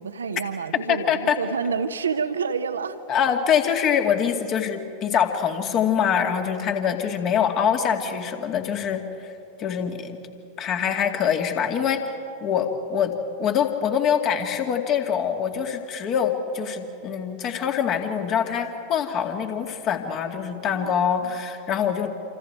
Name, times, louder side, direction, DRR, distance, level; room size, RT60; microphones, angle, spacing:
voice 1, 0.0-3.0 20.7-21.3, right 5 dB, 70° right, 1.1 m, -29 dB
voice 2, 0.9-1.4 3.1-9.0 9.6-10.2 10.6-12.2 12.4-22.1, left 8 dB, 35° left, 2.3 m, -24 dB
27.5 x 27.5 x 4.8 m
figure-of-eight pair, 90°, 0 cm